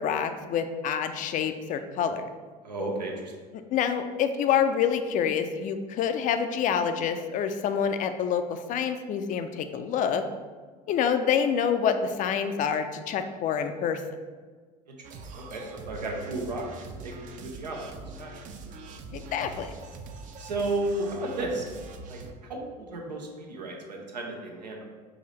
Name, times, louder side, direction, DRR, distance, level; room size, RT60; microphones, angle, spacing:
voice 1, 0.0-2.2 3.5-10.2 10.9-14.0 19.1-19.7, left 7 dB, 40° left, 8 dB, 0.4 m, -27 dB
voice 2, 2.6-3.3 14.9-15.0 15.3-16.7 17.0-17.9 18.2-18.3 20.4-21.7 22.1-22.2 22.5-24.8, right 2 dB, 90° right, 0 dB, 0.7 m, -33 dB
sound 1, 15.0-22.3, right 3 dB, 40° right, 0.5 m, -43 dB
4.8 x 2.6 x 3.1 m, 1.5 s
hypercardioid pair, 75°, 21 cm